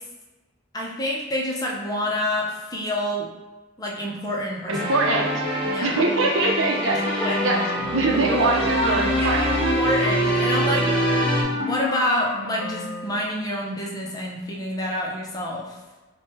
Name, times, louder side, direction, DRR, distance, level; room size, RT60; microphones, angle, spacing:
voice 1, 0.7-3.3 3.8-4.7 5.6-6.0 7.2-7.3 8.5-11.1 11.5-15.8, left 1 dB, 20° left, -2 dB, 0.6 m, -27 dB
sound 1, 4.7-11.4, equal, 30° right, 0.6 m, -26 dB
voice 2, 4.7-5.3 5.8-7.6 7.9-9.7, right 2 dB, 80° right, 0 dB, 0.6 m, -23 dB
Wind instrument woodwind instrument, 7.4-13.3, equal, 65° left, 0.5 m, -28 dB
3.5 x 2.2 x 4.2 m, 1.2 s
head